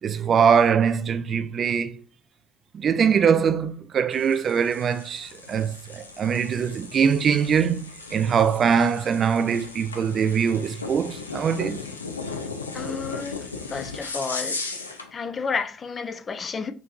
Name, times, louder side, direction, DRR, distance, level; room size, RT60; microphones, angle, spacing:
voice 1, 0.0-2.0 2.7-11.8, right 7 dB, 45° right, 0.4 m, -22 dB
sound 1, 4.1-15.1, left 4 dB, 90° left, 0.4 m, -37 dB
voice 2, 12.7-14.6 15.1-16.7, left 5 dB, 35° left, 0.5 m, -31 dB
5.2 x 2.9 x 2.5 m
figure-of-eight pair, 55°, 0 cm